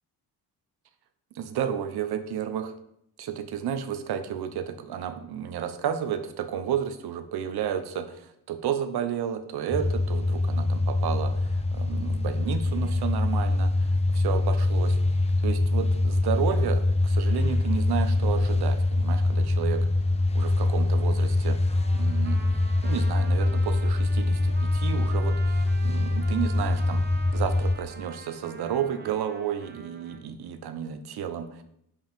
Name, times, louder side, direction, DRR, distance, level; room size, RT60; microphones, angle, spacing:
voice 1, 1.3-2.8 3.2-14.9 15.4-19.9 20.3-21.6 21.9-22.4 22.8-27.0 27.3-31.6, right 9 dB, 80° right, 9 dB, 0.9 m, -32 dB
sound 1, 9.7-27.7, left 2 dB, 15° left, 0.7 m, -24 dB
Trumpet, 21.7-30.2, right 4 dB, 25° right, 0.9 m, -46 dB
5.6 x 5.4 x 5.2 m, 0.74 s
cardioid pair, 100°, 38 cm